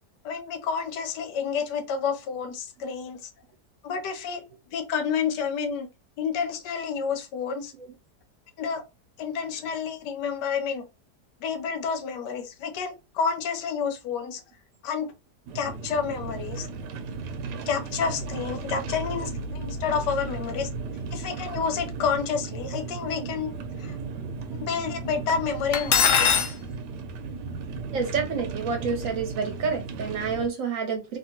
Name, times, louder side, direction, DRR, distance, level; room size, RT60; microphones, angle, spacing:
voice 1, 0.2-3.3 3.8-4.4 4.7-5.9 6.2-7.7 8.6-8.8 9.2-10.9 11.4-14.4 14.8-15.1 15.5-16.7 17.7-20.7 21.1-24.0 24.6-26.3, left 6 dB, 90° left, 1.3 m, -29 dB
sound 1, 15.5-30.5, right 4 dB, 85° right, 1.2 m, -35 dB
Cutlery silverware, 25.7-26.5, left 7 dB, 65° left, 0.7 m, -20 dB
voice 2, 27.9-31.2, right 5 dB, 60° right, 1.1 m, -28 dB
2.8 x 2.8 x 2.8 m
omnidirectional pair, 1.8 m